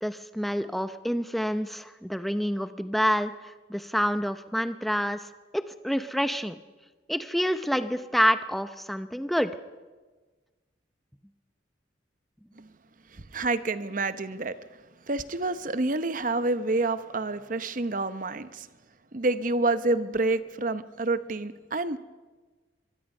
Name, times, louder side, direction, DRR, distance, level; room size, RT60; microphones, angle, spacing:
voice 1, 0.0-5.3 5.5-6.6 7.1-9.5, equal, ahead, 10 dB, 0.7 m, -28 dB
voice 2, 13.1-14.6 15.1-18.7 19.1-22.0, right 2 dB, 45° right, 12 dB, 0.9 m, -28 dB
23.5 x 23.0 x 5.5 m, 1.3 s
head